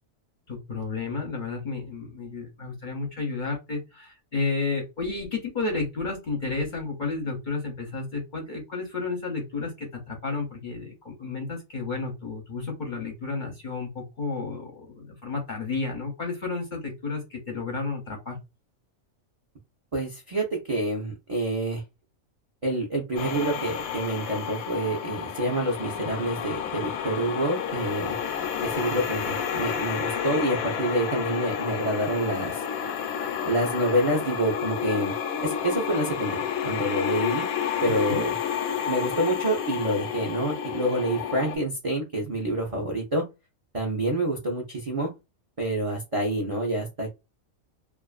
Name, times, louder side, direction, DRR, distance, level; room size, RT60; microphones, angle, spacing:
voice 1, 0.5-18.3 38.1-38.2, left 4 dB, 50° left, 1 dB, 0.6 m, -32 dB
voice 2, 19.9-21.8 22.6-28.2 28.6-32.6 33.5-35.1 35.4-37.5 37.8-38.4 38.9-43.2 43.7-45.1 45.6-47.1, right 1 dB, 45° right, -1 dB, 0.4 m, -27 dB
sound 1, 23.2-41.6, left 8 dB, 85° left, 1.0 m, -30 dB
2.4 x 2.4 x 2.3 m, 0.25 s
omnidirectional pair, 1.4 m